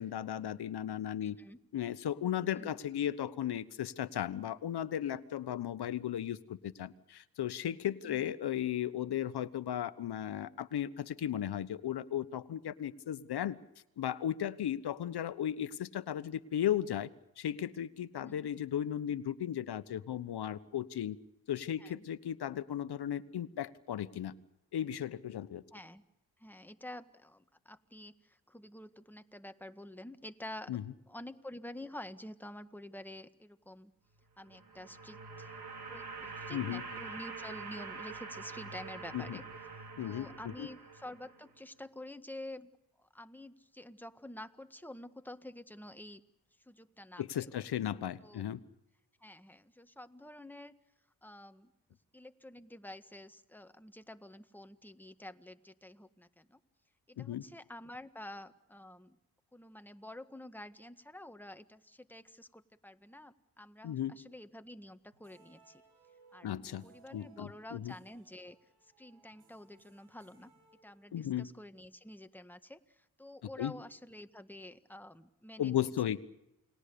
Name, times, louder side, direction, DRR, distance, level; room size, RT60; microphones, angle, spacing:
voice 1, 0.0-1.4 1.7-13.6 14.0-17.1 17.4-21.2 21.5-24.3 24.7-25.6 30.7-30.8 36.5-36.8 39.1-39.4 40.0-40.7 47.2-48.6 57.2-57.4 63.8-64.1 66.4-66.8 67.1-67.9 71.1-71.5 73.6-73.7 75.6-76.2, left 10 dB, 65° left, 15 dB, 1.2 m, -36 dB
voice 2, 1.2-1.6 2.5-2.8 8.0-8.3 18.2-18.5 21.8-22.0 25.7-26.0 26.4-30.7 31.1-33.9 34.4-39.4 40.0-42.7 43.0-46.2 46.6-47.5 48.2-48.4 49.2-50.7 51.2-51.7 52.1-56.6 57.1-59.2 59.5-65.8 66.3-66.5 66.8-68.6 68.8-70.5 70.8-76.2, left 1 dB, 5° left, 9 dB, 1.7 m, -49 dB
sound 1, 34.4-41.5, right 4 dB, 60° right, 4.7 m, -45 dB
sound 2, 65.1-71.4, right 4 dB, 85° right, 6.2 m, -65 dB
29.5 x 20.5 x 6.9 m, 0.87 s
supercardioid pair, 45°, 41 cm